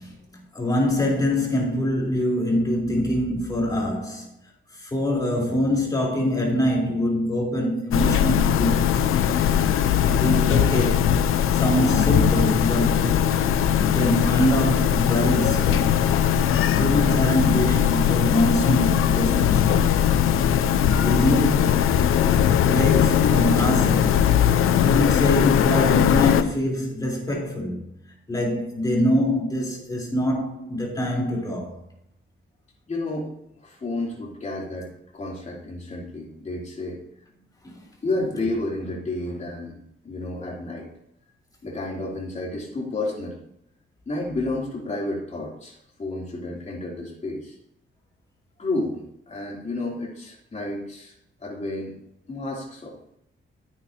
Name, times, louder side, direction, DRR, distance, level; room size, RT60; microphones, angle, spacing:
voice 1, 0.0-4.3 4.7-9.0 10.0-11.1 11.5-13.3 13.8-16.0 16.7-19.9 20.9-21.8 22.7-24.2 24.8-27.8 28.3-31.8 37.6-37.8, left 1 dB, 20° left, 3.8 m, -24 dB
sound 1, 7.9-26.4, left 9 dB, 85° left, 0.7 m, -20 dB
voice 2, 32.9-37.0 38.0-39.8 40.0-40.9 41.6-43.4 44.0-47.6 48.6-51.1 51.4-51.9 52.3-53.0, left 2 dB, 35° left, 3.1 m, -31 dB
15.0 x 8.9 x 2.9 m
cardioid pair, 140°, 21 cm